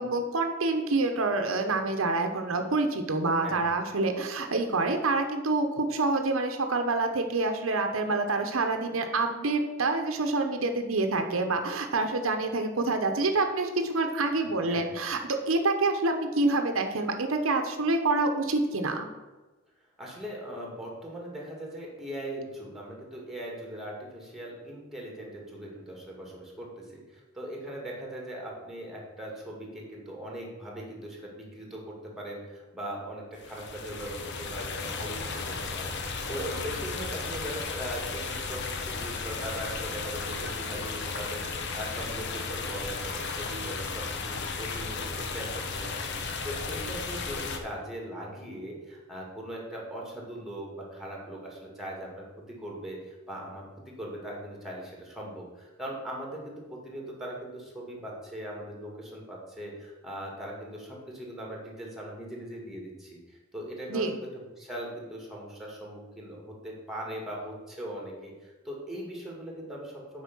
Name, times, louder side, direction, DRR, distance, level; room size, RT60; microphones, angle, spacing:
voice 1, 0.0-19.1 63.9-64.1, right 3 dB, 90° right, 5 dB, 0.9 m, -27 dB
voice 2, 14.7-15.0 20.0-45.9 46.2-70.2, right 1 dB, ahead, -2 dB, 2.3 m, -40 dB
sound 1, 33.4-47.6, left 4 dB, 60° left, 1.0 m, -34 dB
8.2 x 5.0 x 6.1 m, 1.2 s
head